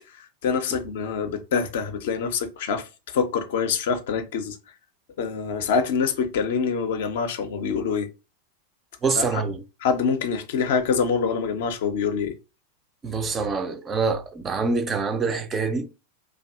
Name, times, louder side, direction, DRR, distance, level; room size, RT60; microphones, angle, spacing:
voice 1, 0.4-2.9 3.1-4.6 5.2-8.1 9.1-9.2 9.8-12.3, left 6 dB, 55° left, 0.4 m, -25 dB
voice 2, 9.0-9.6 13.0-15.9, right 4 dB, 20° right, 0.3 m, -25 dB
2.6 x 2.3 x 2.2 m
figure-of-eight pair, 90°, 0 cm